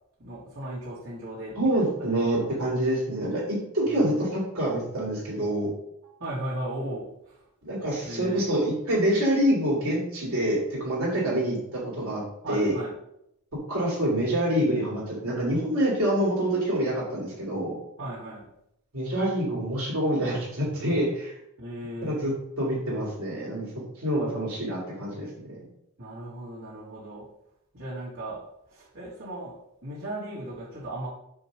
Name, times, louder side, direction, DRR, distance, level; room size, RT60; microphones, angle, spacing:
voice 1, 0.2-2.5 3.9-4.2 6.2-7.4 8.0-8.4 12.4-12.9 18.0-18.4 21.6-22.2 26.0-27.3 27.7-31.1, right 1 dB, 70° right, -7 dB, 2.6 m, -37 dB
voice 2, 1.6-5.7 7.6-12.2 12.5-12.7 13.7-17.8 18.9-21.3 22.0-22.3 22.6-23.7 24.0-25.3, right 1 dB, 85° right, -5 dB, 2.6 m, -26 dB
7.7 x 3.1 x 6.0 m, 0.79 s
head